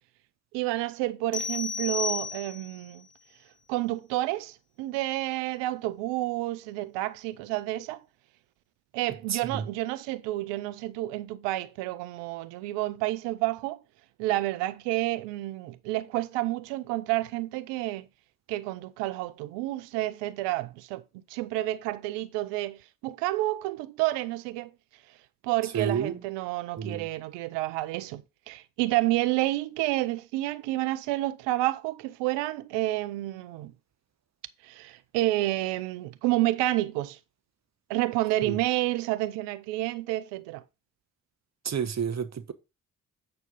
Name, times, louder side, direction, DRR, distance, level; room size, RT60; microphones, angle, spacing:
voice 1, 0.5-3.1 3.7-8.0 8.9-13.8 14.2-18.1 18.5-21.0 21.3-22.8 23.0-24.7 25.4-33.7 34.6-37.2 37.9-40.6, right 17 dB, 70° right, 0.7 m, -29 dB
sound 1, 1.3-2.9, left 5 dB, 25° left, 0.9 m, -32 dB
voice 2, 9.3-9.6 25.7-26.2 26.8-27.1 38.4-38.6 41.6-42.5, right 7 dB, 40° right, 1.2 m, -30 dB
8.7 x 4.4 x 5.3 m
hypercardioid pair, 40°, 43 cm